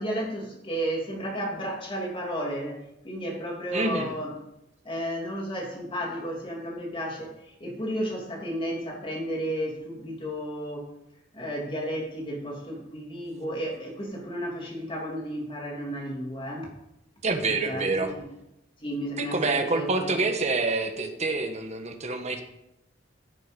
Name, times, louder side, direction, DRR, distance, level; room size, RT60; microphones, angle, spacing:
voice 1, 0.0-4.4 4.8-10.9 11.3-16.7 17.6-18.2 18.8-20.1, equal, 30° left, -1 dB, 2.7 m, -33 dB
voice 2, 3.7-4.2 17.2-18.1 19.2-22.4, right 3 dB, 35° right, 5 dB, 1.4 m, -27 dB
14.5 x 6.6 x 5.3 m, 0.85 s
head